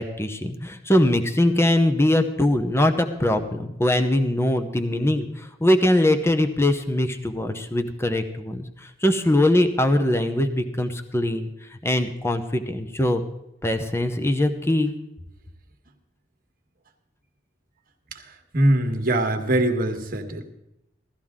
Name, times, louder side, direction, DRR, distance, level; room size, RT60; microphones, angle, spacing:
voice 1, 0.0-13.2 13.6-14.9, left 1 dB, 15° left, 7 dB, 0.8 m, -22 dB
voice 2, 18.5-20.4, right 1 dB, 50° right, 4 dB, 1.5 m, -22 dB
16.5 x 13.5 x 3.7 m, 0.88 s
head